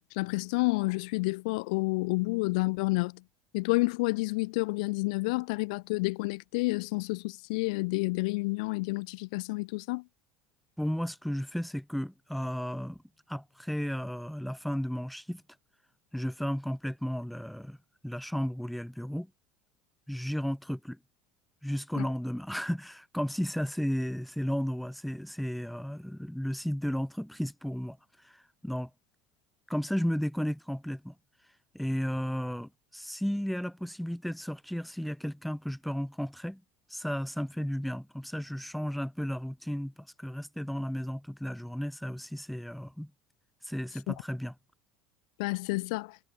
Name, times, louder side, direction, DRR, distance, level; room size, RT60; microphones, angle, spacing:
voice 1, 0.1-3.2 3.5-10.0 22.0-22.1 44.1-44.2 45.4-46.2, left 25 dB, 80° left, 0.5 m, -29 dB
voice 2, 10.8-13.0 13.3-15.4 16.1-17.8 18.0-19.3 20.1-21.0 21.6-28.0 28.2-28.9 29.7-31.1 31.7-36.6 36.9-43.1 43.6-44.5, equal, ahead, 0.4 m, -34 dB
cardioid pair, 150°, 4 cm